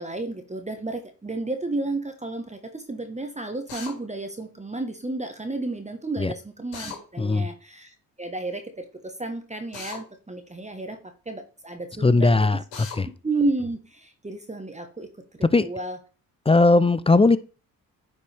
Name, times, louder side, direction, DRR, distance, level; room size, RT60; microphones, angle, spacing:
voice 1, 0.0-11.0 11.2-12.6 13.2-16.0, right 2 dB, 15° right, 1.3 m, -32 dB
Drill, 3.7-3.9 6.7-7.0 9.7-10.0 12.7-13.0, left 6 dB, 90° left, 2.5 m, -37 dB
voice 2, 7.2-7.5 12.0-12.6 13.0-13.1 15.5-15.7 16.5-17.4, left 3 dB, 15° left, 0.5 m, -18 dB
9.7 x 5.2 x 3.4 m
hypercardioid pair, 50°, 41 cm